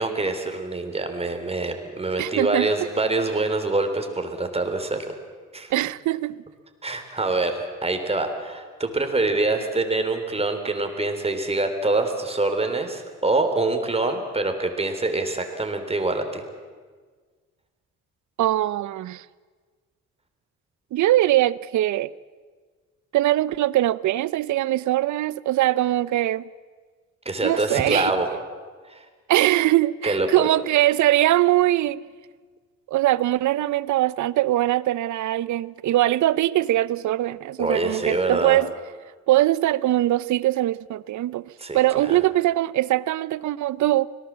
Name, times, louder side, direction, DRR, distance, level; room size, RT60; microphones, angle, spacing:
voice 1, 0.0-5.1 5.5-5.7 6.8-16.4 27.3-28.3 28.9-29.0 30.0-30.5 37.6-38.6 41.6-42.2, right 2 dB, 20° right, 3.6 m, -25 dB
voice 2, 2.2-2.7 5.7-6.4 18.4-19.2 20.9-22.1 23.1-26.5 27.4-28.1 29.3-32.0 32.9-38.7 39.3-44.1, right 15 dB, 70° right, 0.7 m, -22 dB
25.5 x 18.5 x 7.5 m
cardioid pair, 90°, 30 cm